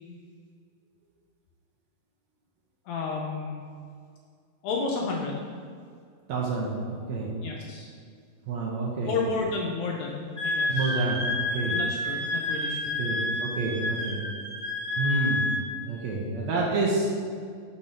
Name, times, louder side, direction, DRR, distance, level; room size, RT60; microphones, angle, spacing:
voice 1, 2.9-3.6 4.6-5.4 7.4-7.9 9.1-11.0 11.7-13.0, left 4 dB, 75° left, -1 dB, 1.8 m, -31 dB
voice 2, 6.3-7.3 8.5-9.1 10.7-11.2 11.5-11.7 13.0-14.2 15.0-15.5 15.8-17.1, right 3 dB, 70° right, -3 dB, 1.9 m, -28 dB
Wind instrument woodwind instrument, 10.4-15.7, left 2 dB, 30° right, 0.8 m, -29 dB
5.8 x 4.1 x 5.0 m, 2.1 s
omnidirectional pair, 3.7 m